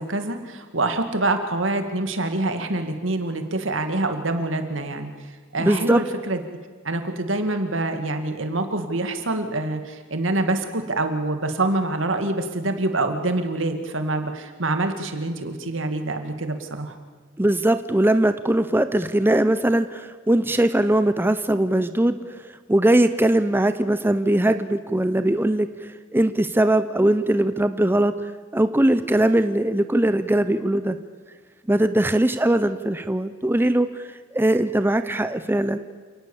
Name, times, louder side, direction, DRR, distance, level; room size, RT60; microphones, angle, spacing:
voice 1, 0.0-5.1 5.5-6.4 6.8-17.0, right 2 dB, 75° right, 7 dB, 2.3 m, -25 dB
voice 2, 5.6-6.0 17.4-22.4 22.7-31.0 31.7-35.8, right 1 dB, 10° right, 11 dB, 0.7 m, -20 dB
28.5 x 18.5 x 7.2 m, 1.5 s
head